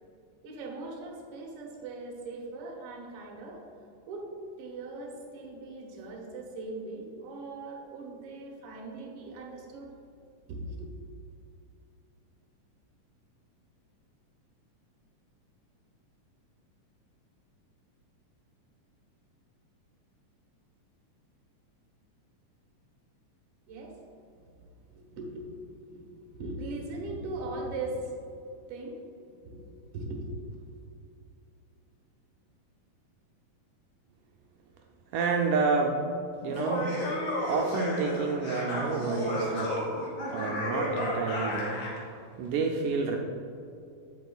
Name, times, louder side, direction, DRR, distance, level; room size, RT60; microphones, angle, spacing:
voice 1, 0.4-3.6 4.1-4.3 4.6-9.9 10.5-11.0 23.7-24.0 25.0-28.2 28.7-29.0 29.4-29.7 29.9-30.8, right 2 dB, 60° right, -1 dB, 1.7 m, -39 dB
voice 2, 35.1-36.0 36.4-37.0 37.5-39.7 40.3-41.9 42.4-43.2, right 4 dB, 80° right, 0 dB, 2.0 m, -29 dB
Laughter, 36.4-42.0, equal, 60° left, 3.1 m, -32 dB
8.3 x 8.1 x 2.3 m, 2.6 s
omnidirectional pair, 3.8 m